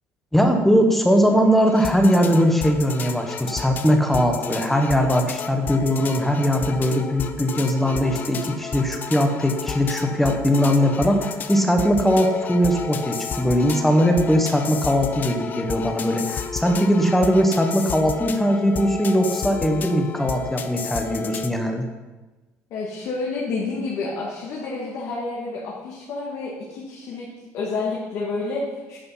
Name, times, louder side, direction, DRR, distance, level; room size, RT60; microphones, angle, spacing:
voice 1, 0.3-21.9, equal, 5° left, 4 dB, 1.1 m, -20 dB
sound 1, 1.6-21.5, left 6 dB, 30° left, 0.6 m, -32 dB
voice 2, 22.7-27.3 27.5-29.0, left 3 dB, 55° left, -4 dB, 2.1 m, -29 dB
10.0 x 7.8 x 5.7 m, 1.2 s
cardioid pair, 170°, 6 cm